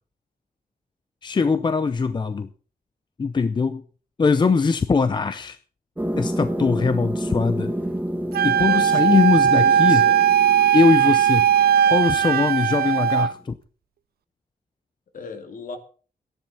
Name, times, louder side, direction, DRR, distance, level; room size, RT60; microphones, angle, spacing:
voice 1, 1.2-2.5 3.2-3.8 4.2-5.6 6.2-7.7 8.4-10.0 10.7-11.4 11.9-13.6, left 4 dB, 30° left, 11 dB, 0.6 m, -21 dB
sound 1, 6.0-13.2, right 1 dB, 10° right, 1.2 m, -30 dB
Wind instrument woodwind instrument, 8.3-13.3, right 9 dB, 85° right, 0.5 m, -18 dB
voice 2, 8.6-9.3 9.5-10.2 15.1-15.8, left 4 dB, 60° left, 6 dB, 2.6 m, -36 dB
13.0 x 10.5 x 5.8 m, 0.41 s
wide cardioid pair, 175°, 16 cm